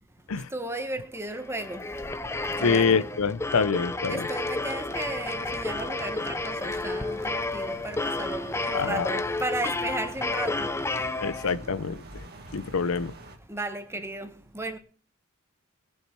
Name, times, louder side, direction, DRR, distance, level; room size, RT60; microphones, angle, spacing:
voice 1, 0.5-1.9 2.6-3.0 4.1-10.8 13.5-14.8, right 2 dB, 10° right, 1.4 m, -35 dB
sound 1, 1.4-11.8, left 2 dB, 10° left, 0.6 m, -31 dB
voice 2, 2.6-4.2 8.7-9.1 11.2-12.2 12.5-13.1, left 5 dB, 65° left, 0.6 m, -26 dB
sound 2, 4.9-13.4, right 2 dB, 45° right, 2.0 m, -46 dB
20.5 x 7.3 x 4.6 m
head